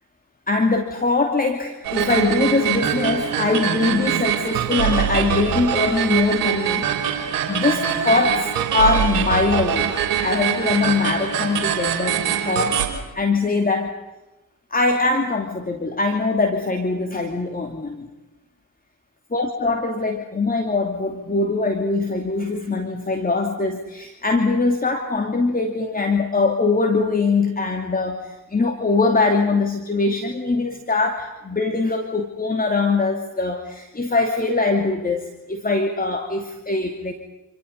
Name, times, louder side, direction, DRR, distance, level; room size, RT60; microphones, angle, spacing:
voice 1, 0.5-9.9 10.2-12.8 13.1-13.9 14.7-18.1 19.3-37.1, left 3 dB, 20° left, 3 dB, 2.8 m, -22 dB
sound 1, 1.8-12.9, right 9 dB, 70° right, 3.4 m, -23 dB
27.5 x 27.5 x 5.5 m, 1.0 s
figure-of-eight pair, 40°, 45 cm